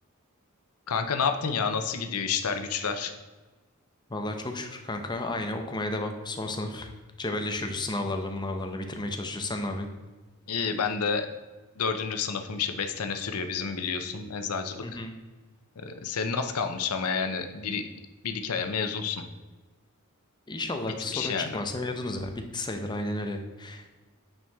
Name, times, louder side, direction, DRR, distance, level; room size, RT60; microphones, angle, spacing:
voice 1, 0.9-3.1 10.5-11.3 11.8-14.8 15.8-17.9 18.2-19.2 21.1-21.6, left 5 dB, 85° left, 7 dB, 0.7 m, -29 dB
voice 2, 4.1-6.9 7.2-9.9 14.8-15.1 20.5-23.9, left 2 dB, 20° left, 5 dB, 0.7 m, -32 dB
8.9 x 4.6 x 3.5 m, 1.2 s
head